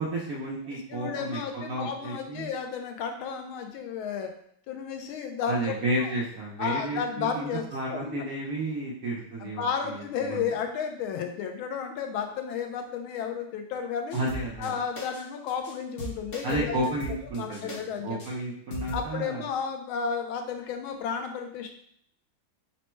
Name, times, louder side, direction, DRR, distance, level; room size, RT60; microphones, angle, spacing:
voice 1, 0.0-2.5 5.5-10.5 14.1-14.7 16.4-17.8 18.0-19.4, right 1 dB, 65° right, -4 dB, 0.9 m, -32 dB
voice 2, 0.9-4.3 4.7-5.7 6.0-6.1 6.6-8.3 9.4-14.2 14.6-16.8 17.3-18.4 18.9-21.7, left 6 dB, 90° left, 4 dB, 1.4 m, -33 dB
sound 1, 14.1-14.7 15.0-15.2 15.5-15.7 16.0-17.8 18.2-18.3 18.7-19.1, right 1 dB, 70° left, 0.5 m, -38 dB
4.2 x 2.1 x 4.4 m, 0.65 s
omnidirectional pair, 2.2 m